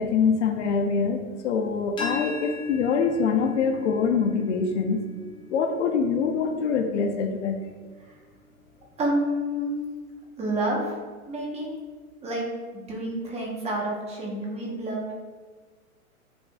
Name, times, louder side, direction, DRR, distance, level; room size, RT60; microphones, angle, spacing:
voice 1, 0.0-5.0 5.5-7.6, left 5 dB, 55° left, 5 dB, 0.8 m, -24 dB
sound 1, 2.0-7.7, left 1 dB, 10° left, 0.9 m, -39 dB
voice 2, 9.0-9.8 10.4-10.9 11.3-11.7 12.2-12.5 12.7-15.1, right 1 dB, 15° right, -2 dB, 1.1 m, -29 dB
9.0 x 5.3 x 2.4 m, 1.5 s
hypercardioid pair, 145°, 44 cm